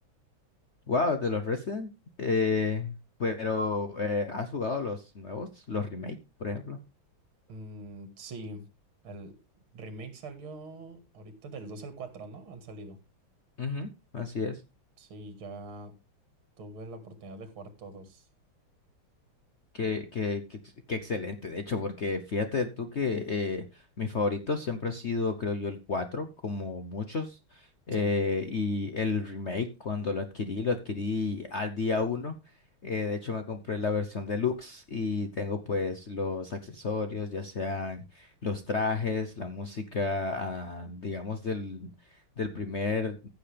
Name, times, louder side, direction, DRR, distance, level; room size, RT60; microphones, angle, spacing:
voice 1, 0.9-1.9 2.2-2.9 3.2-6.8 13.6-14.6 19.7-20.6 20.9-32.3 32.8-43.2, left 4 dB, 55° left, 8 dB, 0.7 m, -31 dB
voice 2, 7.5-8.6 9.0-9.4 9.7-13.0 15.0-15.9 16.6-18.3 27.9-28.1, right 2 dB, 70° right, 9 dB, 2.5 m, -43 dB
15.5 x 6.7 x 3.4 m, 0.26 s
omnidirectional pair, 2.4 m